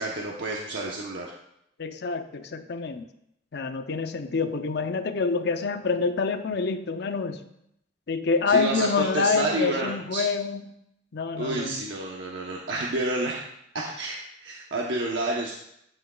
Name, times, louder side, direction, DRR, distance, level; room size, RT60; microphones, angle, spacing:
voice 1, 0.0-1.3 8.5-10.2 11.4-13.4 13.7-15.5, right 2 dB, 80° right, -2 dB, 1.0 m, -29 dB
voice 2, 1.8-3.1 3.5-7.4 8.1-10.7 11.1-11.8, left 4 dB, 65° left, 9 dB, 0.6 m, -27 dB
13.0 x 6.3 x 2.3 m, 0.77 s
head